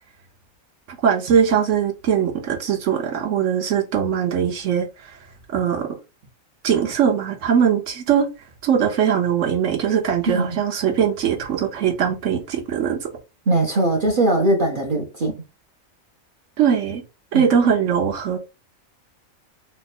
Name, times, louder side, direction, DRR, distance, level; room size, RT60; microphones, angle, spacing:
voice 1, 0.9-4.9 5.5-6.0 6.6-8.3 8.6-13.1 16.6-17.0 17.3-18.4, right 8 dB, 65° right, 1.1 m, -21 dB
voice 2, 10.3-10.6 13.5-15.4 17.3-17.5, right 2 dB, 45° right, 0.8 m, -20 dB
3.2 x 2.2 x 4.2 m
omnidirectional pair, 1.4 m